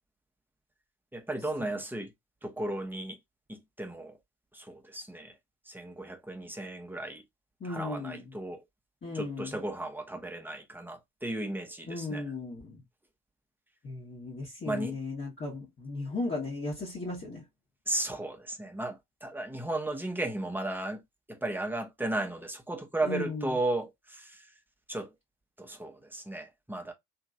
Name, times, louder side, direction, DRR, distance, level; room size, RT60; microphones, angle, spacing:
voice 1, 1.1-2.1 2.4-3.2 3.5-4.1 4.5-5.3 5.7-7.2 7.7-8.6 9.1-12.2 14.7-14.9 17.9-21.0 21.3-24.4 24.9-25.1 25.6-26.9, right 2 dB, 5° right, 0.8 m, -35 dB
voice 2, 7.6-8.4 9.0-9.6 11.9-12.8 13.8-17.4 23.0-23.6, left 3 dB, 25° left, 1.2 m, -36 dB
2.9 x 2.8 x 2.3 m
figure-of-eight pair, 45°, 47 cm